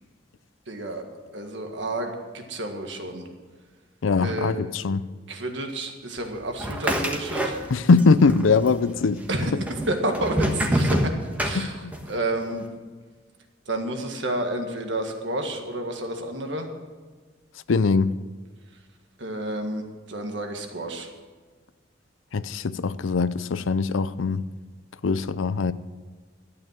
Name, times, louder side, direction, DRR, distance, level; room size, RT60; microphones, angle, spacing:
voice 1, 0.7-1.1 1.3-3.3 4.2-4.5 5.3-7.6 9.3-11.1 11.4-12.7 13.7-16.7 19.2-21.1, right 1 dB, 65° right, 1.8 m, -30 dB
voice 2, 4.0-5.0 7.7-9.2 11.5-11.9 17.7-18.1 22.3-24.4 25.0-25.7, left 4 dB, 90° left, 0.5 m, -21 dB
sound 1, 6.6-8.0 8.3-9.0 9.7-12.1, equal, 10° right, 1.3 m, -26 dB
12.5 x 9.0 x 7.6 m
head